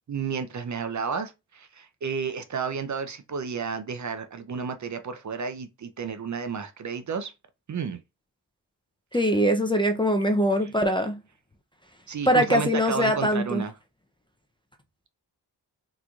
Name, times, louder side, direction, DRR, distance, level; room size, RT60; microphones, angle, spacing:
voice 1, 0.1-7.3 7.7-8.0 12.1-13.7, right 6 dB, 45° right, 0.5 m, -32 dB
voice 2, 9.1-11.2 12.3-13.6, equal, 15° left, 0.4 m, -22 dB
3.8 x 3.0 x 2.3 m
cardioid pair, 65°, 40 cm